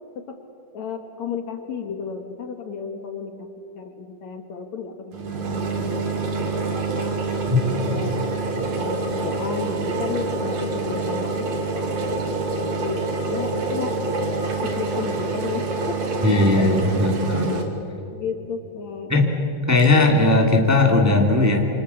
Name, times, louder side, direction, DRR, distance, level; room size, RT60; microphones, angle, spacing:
voice 1, 0.7-3.5 3.8-7.2 7.6-8.3 8.8-14.0 14.6-16.0 16.6-16.7 17.6-17.7 18.1-19.2, left 5 dB, 60° left, 5 dB, 2.6 m, -33 dB
sound 1, 5.1-17.6, right 3 dB, 55° right, 3.8 m, -26 dB
voice 2, 16.2-17.6 19.1-19.3 19.7-21.6, left 2 dB, 5° right, 1 dB, 2.4 m, -18 dB
28.5 x 27.0 x 7.2 m, 2.8 s
omnidirectional pair, 4.0 m